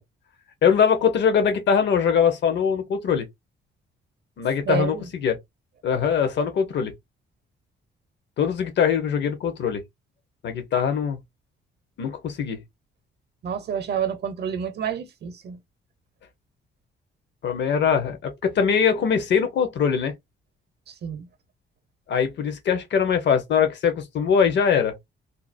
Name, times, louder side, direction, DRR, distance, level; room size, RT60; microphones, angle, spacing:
voice 1, 0.6-3.3 4.4-5.4 5.8-6.9 8.4-9.8 10.4-11.2 12.0-12.6 17.4-20.1 22.1-25.0, left 7 dB, 65° left, 0.9 m, -22 dB
voice 2, 4.6-5.1 13.4-15.6 20.9-21.3, right 8 dB, 55° right, 0.7 m, -29 dB
2.7 x 2.1 x 2.5 m
cardioid pair, 90°, 20 cm